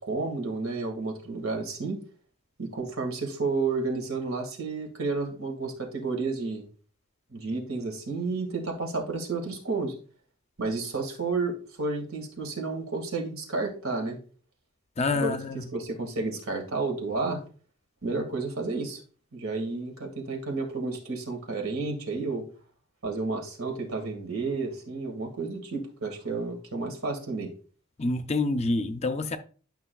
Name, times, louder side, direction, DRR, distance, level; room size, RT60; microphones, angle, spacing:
voice 1, 0.0-2.0 2.6-6.7 7.3-10.0 10.6-14.2 15.1-15.4 15.7-17.4 18.0-19.0 19.3-22.4 23.0-27.5, right 3 dB, 80° right, 1.9 m, -31 dB
voice 2, 15.0-15.7 28.0-29.4, left 3 dB, 30° left, 0.5 m, -27 dB
11.0 x 5.9 x 2.3 m
head